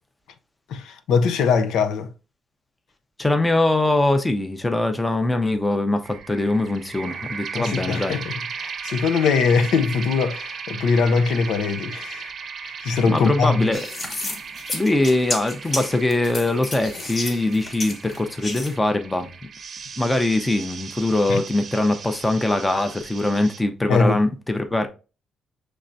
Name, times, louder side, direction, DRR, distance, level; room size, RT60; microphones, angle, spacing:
voice 1, 0.7-2.1 7.6-12.3 12.6-13.7 21.3-21.4 23.9-24.2, left 5 dB, 80° left, 0.5 m, -21 dB
voice 2, 3.2-8.2 13.1-13.8 14.2-14.4 14.7-19.3 20.0-24.9, left 2 dB, 10° left, 0.6 m, -22 dB
sound 1, 6.0-23.6, right 6 dB, 45° right, 0.6 m, -37 dB
sound 2, 13.7-18.7, left 2 dB, 35° left, 1.1 m, -31 dB
5.7 x 3.2 x 2.5 m
cardioid pair, 135°, 0 cm